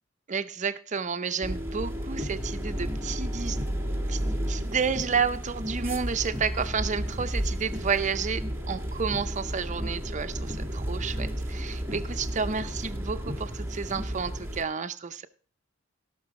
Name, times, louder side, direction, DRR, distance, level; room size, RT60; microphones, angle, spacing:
voice 1, 0.3-3.8 4.1-4.2 4.5-15.3, right 5 dB, 35° right, 10 dB, 0.6 m, -31 dB
sound 1, 1.4-14.6, equal, 10° right, 1.4 m, -32 dB
16.5 x 6.0 x 4.8 m, 0.43 s
head